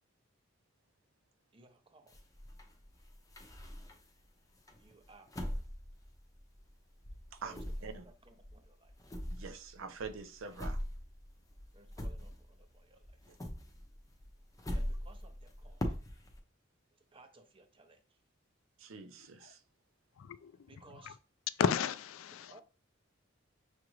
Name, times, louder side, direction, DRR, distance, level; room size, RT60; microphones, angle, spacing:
voice 1, 1.5-2.2 4.8-5.6 7.4-8.9 11.7-13.3 14.7-16.0 16.9-18.2 20.7-21.2 22.5-22.6, right 3 dB, 25° right, 0.6 m, -60 dB
sound 1, 2.1-4.2 4.7-6.8 7.0-12.7 13.0-16.4, equal, 15° left, 0.6 m, -41 dB
voice 2, 7.3-8.1 9.3-10.8 13.3-13.4 18.8-19.6, right 5 dB, 85° right, 0.6 m, -45 dB
voice 3, 19.2-19.5 20.1-21.2 21.5-22.6, left 7 dB, 85° left, 0.3 m, -35 dB
5.9 x 2.5 x 3.1 m
head